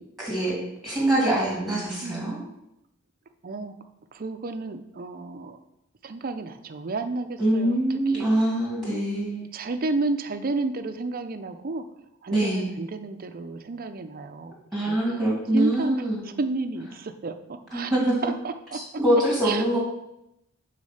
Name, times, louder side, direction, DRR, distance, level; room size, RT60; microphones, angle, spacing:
voice 1, 0.2-0.6 0.8-2.4 7.4-9.3 12.3-12.7 14.7-16.2 17.7-18.1 18.7-19.8, right 1 dB, ahead, -5 dB, 2.2 m, -24 dB
voice 2, 2.0-2.5 3.4-3.7 4.1-5.6 6.0-8.3 8.9-11.8 12.2-14.5 14.9-15.2 15.5-17.9 18.2-18.8 19.4-19.6, right 3 dB, 45° right, 8 dB, 0.5 m, -32 dB
6.3 x 4.1 x 5.7 m, 0.84 s
head